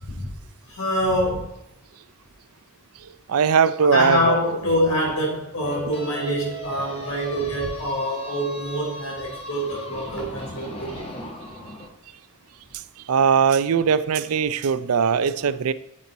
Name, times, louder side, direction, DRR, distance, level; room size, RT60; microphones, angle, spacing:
voice 1, 0.7-1.5 3.9-11.0, equal, 70° left, -1 dB, 4.0 m, -25 dB
voice 2, 3.3-4.4 13.1-15.7, right 6 dB, 85° right, 15 dB, 0.5 m, -20 dB
sound 1, 5.6-11.9, equal, 25° left, 1.4 m, -37 dB
9.3 x 7.6 x 4.2 m, 0.88 s
head